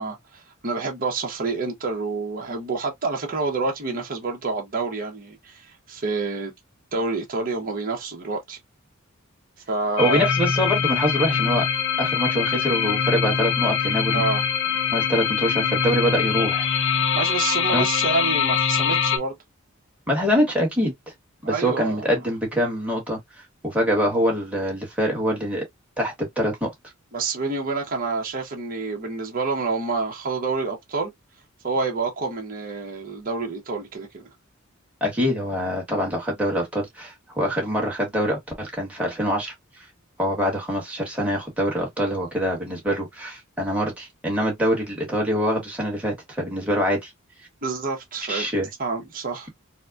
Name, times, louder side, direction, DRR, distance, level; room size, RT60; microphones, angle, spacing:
voice 1, 0.0-6.5 6.9-8.6 9.7-10.3 14.1-14.4 17.1-19.3 21.4-22.1 27.1-31.1 31.6-34.3 47.6-48.5 48.8-49.5, right 3 dB, 45° right, 1.0 m, -28 dB
sound 1, 10.0-19.2, left 7 dB, 60° left, 0.6 m, -23 dB
voice 2, 10.0-11.7 12.0-14.2 14.9-16.7 17.7-17.8 20.1-20.9 21.4-23.2 23.6-25.6 26.0-26.7 35.0-39.5 40.2-47.1 48.3-48.7, equal, 5° right, 1.5 m, -24 dB
4.0 x 2.2 x 2.3 m
head